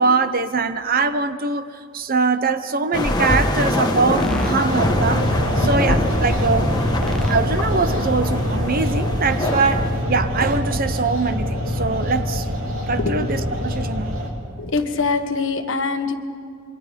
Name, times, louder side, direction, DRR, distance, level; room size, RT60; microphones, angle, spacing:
voice 1, 0.0-1.7 1.9-6.7 7.3-12.5 12.9-14.1, right 4 dB, 40° right, 0.9 m, -22 dB
sound 1, 2.9-10.0, left 1 dB, 20° left, 1.6 m, -25 dB
sound 2, 3.0-5.2 5.9-7.4 7.7-8.0, equal, ahead, 0.6 m, -27 dB
sound 3, 4.4-14.3, equal, 65° right, 3.2 m, -24 dB
voice 2, 14.6-16.1, left 4 dB, 60° left, 1.5 m, -23 dB
27.0 x 24.0 x 5.3 m
head